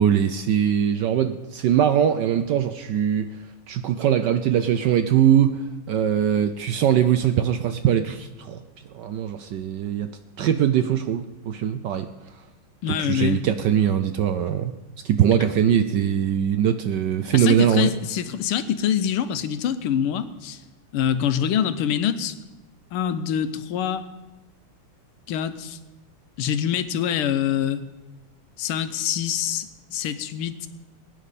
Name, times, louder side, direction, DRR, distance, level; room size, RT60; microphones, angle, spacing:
voice 1, 0.0-3.3 3.7-8.6 8.9-10.1 10.4-12.1 12.9-14.7 15.0-17.9, right 9 dB, 75° right, 9 dB, 1.0 m, -21 dB
voice 2, 12.8-13.4 17.3-20.6 20.9-22.4 22.9-24.0 25.3-25.8 26.4-27.8 28.6-30.7, left 9 dB, 85° left, 11 dB, 1.6 m, -25 dB
21.0 x 9.4 x 4.2 m, 1.0 s
omnidirectional pair, 2.4 m